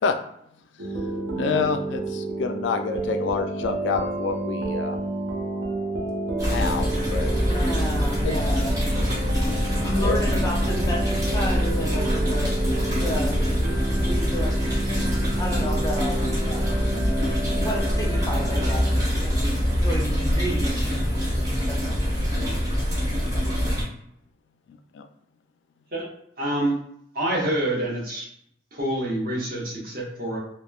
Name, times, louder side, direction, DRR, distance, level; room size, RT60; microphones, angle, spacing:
sound 1, 0.8-19.0, right 2 dB, 85° right, 0.5 m, -31 dB
voice 1, 1.4-5.0 6.5-7.3 8.2-8.4 10.0-10.2 24.7-25.1, left 5 dB, 80° left, 6 dB, 0.3 m, -27 dB
sound 2, 6.4-23.8, equal, 20° right, 0.8 m, -24 dB
voice 2, 7.4-8.8 9.8-12.5 12.9-14.5 15.4-16.2 16.5-16.8 17.5-18.9 19.2-20.8 21.7-22.0, equal, 20° left, -2 dB, 0.5 m, -32 dB
voice 3, 26.4-26.8 27.1-28.3 28.7-30.4, right 1 dB, 55° right, -5 dB, 1.0 m, -26 dB
3.0 x 2.0 x 2.3 m, 0.72 s
head